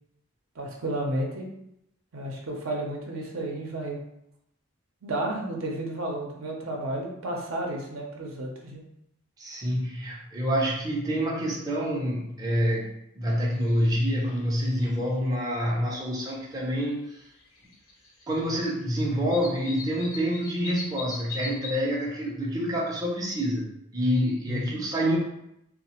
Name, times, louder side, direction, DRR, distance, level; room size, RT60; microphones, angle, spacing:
voice 1, 0.6-1.5 2.1-4.0 5.0-8.8 24.5-24.8, right 1 dB, 75° right, 0 dB, 0.6 m, -32 dB
voice 2, 9.4-17.2 18.3-25.2, equal, 20° right, -3 dB, 0.4 m, -27 dB
sound 1, 13.5-14.0 14.2-15.4 16.9-17.0 17.6-18.6 18.8-18.9 19.3-21.7, left 4 dB, 70° left, 0.8 m, -40 dB
3.1 x 2.0 x 2.9 m, 0.81 s
head